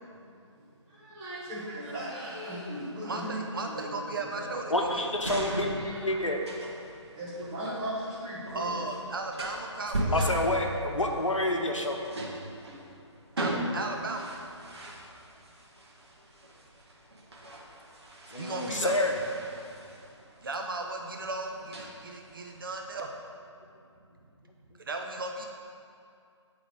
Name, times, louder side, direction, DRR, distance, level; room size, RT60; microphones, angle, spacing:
voice 1, 1.0-3.3 3.7-3.9 4.3-4.5 5.5-6.1 7.2-8.8, equal, 20° right, -8 dB, 1.5 m, -37 dB
voice 2, 3.0-5.1 8.5-10.3 13.4-14.3 18.4-19.0 20.4-23.1 24.8-25.5, right 3 dB, 45° right, 2 dB, 0.5 m, -36 dB
sound 1, 4.6-23.0, right 1 dB, 60° right, 1.3 m, -39 dB
voice 3, 4.7-5.8 6.0-6.4 10.1-12.0 18.3-19.2, left 1 dB, 85° left, 2 dB, 0.8 m, -28 dB
9.8 x 3.7 x 3.5 m, 2.4 s
figure-of-eight pair, 145°, 16 cm